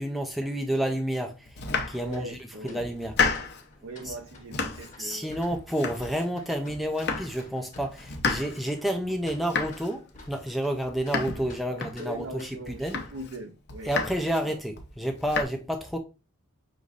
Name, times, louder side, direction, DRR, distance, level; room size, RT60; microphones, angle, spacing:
voice 1, 0.0-1.6 1.9-2.4 2.6-3.2 4.0-4.2 5.0-13.0 13.8-16.0, right 1 dB, ahead, 0.4 m, -30 dB
Domestic sounds home sounds, 1.4-2.4 2.8-3.7 4.1-5.0 5.3-6.4 6.7-7.5 7.7-12.3 12.7-13.4 13.7-14.4 14.8-15.4, left 4 dB, 50° left, 0.7 m, -32 dB
voice 2, 2.0-2.9 3.8-5.3 11.6-13.9 14.4-14.6, right 1 dB, 65° right, 0.6 m, -40 dB
sound 1, 2.1-12.9, left 3 dB, 35° left, 1.1 m, -53 dB
5.1 x 3.0 x 2.4 m
head